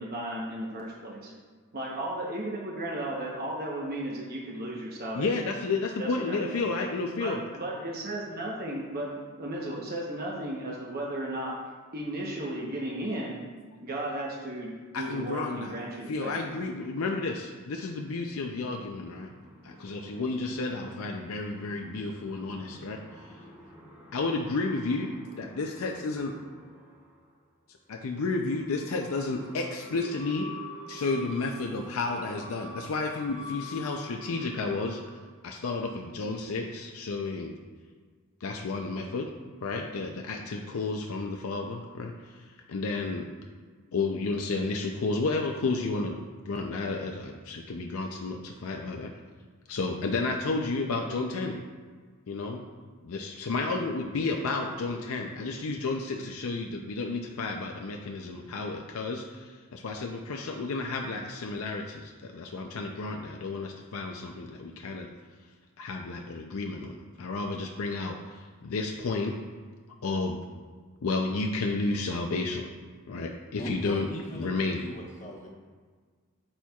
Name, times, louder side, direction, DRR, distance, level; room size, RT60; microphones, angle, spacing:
voice 1, 0.0-1.3 1.7-5.3 6.0-6.7 7.2-13.4 13.8-16.4, right 1 dB, 45° right, -3 dB, 0.9 m, -35 dB
voice 2, 5.1-7.4 14.9-15.7 16.1-19.3 19.6-23.4 24.1-26.4 27.9-30.5 30.9-35.0 35.4-37.5 38.4-39.3 39.6-43.3 43.9-46.2 46.4-49.1 49.7-51.6 52.3-52.6 53.0-65.1 65.8-69.3 70.0-70.4 71.0-72.7 73.1-74.1 74.3-74.8, left 3 dB, 80° left, 2 dB, 0.5 m, -32 dB
sound 1, 18.1-27.3 28.0-35.0, left 1 dB, 10° right, 1.1 m, -48 dB
voice 3, 73.6-75.5, equal, 35° left, -2 dB, 1.2 m, -38 dB
13.0 x 4.4 x 2.3 m, 1.5 s
head